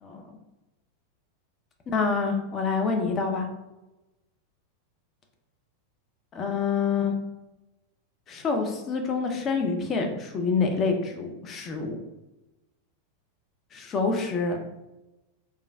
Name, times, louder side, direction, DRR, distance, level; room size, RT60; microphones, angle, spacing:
voice 1, 1.9-3.4 6.3-7.1 8.3-12.0 13.7-14.6, left 4 dB, 30° left, 3 dB, 0.4 m, -27 dB
3.2 x 2.3 x 2.2 m, 0.99 s
figure-of-eight pair, 90°, 0 cm